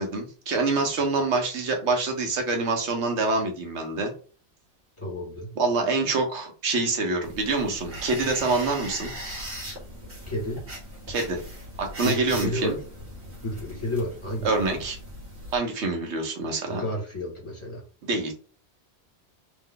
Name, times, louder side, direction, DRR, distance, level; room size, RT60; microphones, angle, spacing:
voice 1, 0.0-4.1 5.6-9.1 11.1-11.4 11.8-12.8 14.4-15.0 15.5-16.8 18.1-18.3, right 3 dB, 80° right, 4 dB, 1.2 m, -26 dB
voice 2, 5.0-5.5 10.3-10.6 12.0-12.8 13.4-14.7 16.7-17.8, left 1 dB, 25° left, -3 dB, 2.0 m, -31 dB
sound 1, 7.2-15.6, equal, 55° right, 1.9 m, -39 dB
3.2 x 3.2 x 3.8 m, 0.37 s
omnidirectional pair, 1.1 m